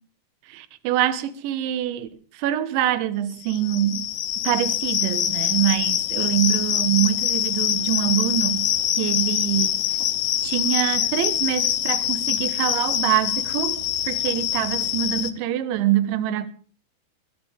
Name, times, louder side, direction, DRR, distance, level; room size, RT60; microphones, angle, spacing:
voice 1, 0.5-4.1 4.5-9.8 10.4-16.5, right 12 dB, 75° right, 3.4 m, -25 dB
sound 1, 3.4-15.3, left 11 dB, 85° left, 2.0 m, -24 dB
23.0 x 13.0 x 3.5 m
omnidirectional pair, 5.8 m